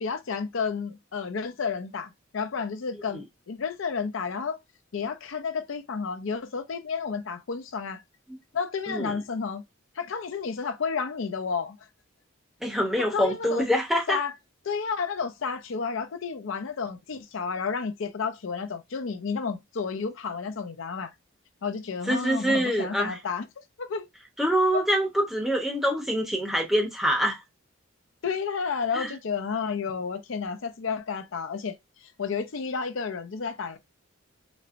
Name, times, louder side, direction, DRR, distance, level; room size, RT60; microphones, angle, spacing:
voice 1, 0.0-4.6 4.9-8.0 8.5-9.6 10.0-11.8 13.1-13.7 14.1-14.3 14.7-21.1 21.6-23.5 23.8-24.1 24.7-24.8 28.2-31.8 32.2-33.8, left 5 dB, 70° left, 0.5 m, -31 dB
voice 2, 8.9-9.2 12.6-14.2 22.1-23.2 24.4-27.4 28.9-29.1, equal, ahead, 0.8 m, -25 dB
4.2 x 2.1 x 2.5 m
head